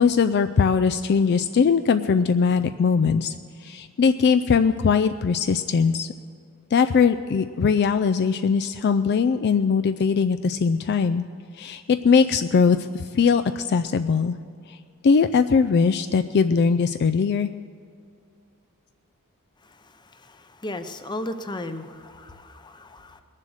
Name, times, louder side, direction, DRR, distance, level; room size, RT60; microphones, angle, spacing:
voice 1, 0.0-3.3 3.6-6.1 6.7-11.2 11.5-14.4 14.7-14.8 15.0-17.5, left 5 dB, 50° left, 9 dB, 0.3 m, -20 dB
voice 2, 19.6-23.2, left 1 dB, 20° left, 9 dB, 0.7 m, -36 dB
20.5 x 7.5 x 6.3 m, 2.3 s
head